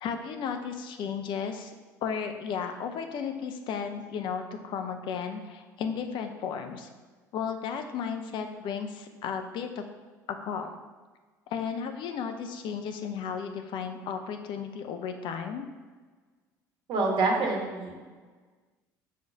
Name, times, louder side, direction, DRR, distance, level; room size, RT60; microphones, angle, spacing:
voice 1, 0.0-1.7 2.0-6.9 7.3-9.8 10.4-10.8 11.5-15.7, left 6 dB, 55° left, 6 dB, 0.7 m, -34 dB
voice 2, 16.9-18.0, right 3 dB, 55° right, 0 dB, 1.6 m, -26 dB
5.0 x 4.0 x 5.8 m, 1.4 s
hypercardioid pair, 60°, 10 cm